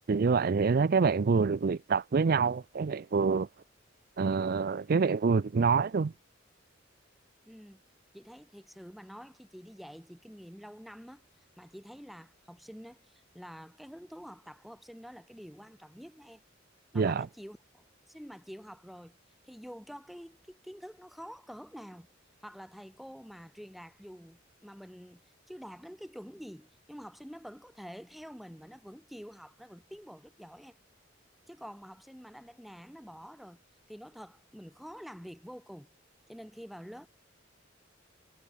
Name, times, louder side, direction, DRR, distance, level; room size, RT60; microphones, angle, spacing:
voice 1, 0.1-3.5 4.2-6.1 16.9-17.3, right 5 dB, 50° right, 0.4 m, -26 dB
voice 2, 7.4-7.8 8.1-11.2 11.6-16.4 16.9-19.2 19.4-22.1 22.4-25.2 25.5-30.8 31.5-33.6 33.9-35.9 36.3-37.1, equal, ahead, 4.8 m, -48 dB
head